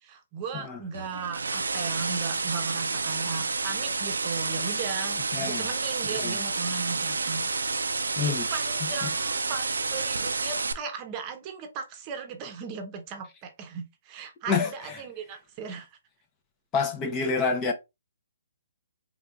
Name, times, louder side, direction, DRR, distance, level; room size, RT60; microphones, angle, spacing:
voice 1, 0.0-7.8 8.1-15.9, right 5 dB, 30° right, 0.8 m, -37 dB
sound 1, 0.9-10.7, right 4 dB, 85° right, 0.4 m, -29 dB
voice 2, 5.3-5.7 6.2-6.4 8.2-8.5 8.8-9.1 14.5-15.0 16.7-17.7, left 5 dB, 20° left, 0.7 m, -28 dB
3.7 x 3.4 x 2.3 m
hypercardioid pair, 140°, 0 cm